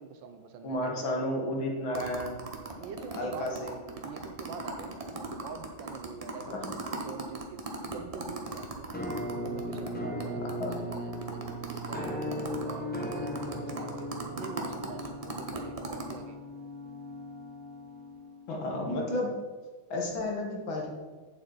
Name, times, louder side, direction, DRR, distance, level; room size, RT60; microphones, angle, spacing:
voice 1, 0.0-1.2 2.7-9.0 9.4-12.2 12.6-16.4, right 5 dB, 75° right, 8 dB, 1.4 m, -45 dB
voice 2, 0.6-2.4 3.1-3.8 6.5-6.7 10.5-10.8 18.5-19.3 19.9-20.9, left 1 dB, 75° left, -1 dB, 2.3 m, -32 dB
sound 1, 1.9-9.9 10.2-10.3 10.5-16.1, right 3 dB, 40° right, 0.5 m, -38 dB
Musical instrument, 8.9-18.7, equal, 5° left, 0.7 m, -38 dB
8.5 x 7.3 x 4.0 m, 1.3 s
omnidirectional pair, 2.2 m